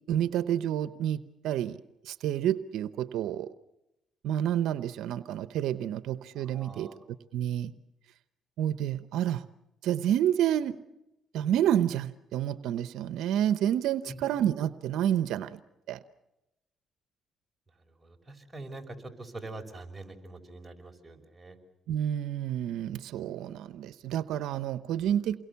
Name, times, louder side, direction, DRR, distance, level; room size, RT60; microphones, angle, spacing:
voice 1, 0.1-1.8 2.0-3.5 4.2-6.9 7.3-7.7 8.6-9.4 9.8-10.8 11.3-15.6 15.9-16.0 21.9-25.4, right 10 dB, 85° right, 13 dB, 0.8 m, -29 dB
voice 2, 6.4-7.0 14.0-14.4 18.0-21.6, right 2 dB, 15° right, 2 dB, 5.5 m, -44 dB
29.0 x 22.0 x 7.0 m, 0.92 s
cardioid pair, 85°, 0 cm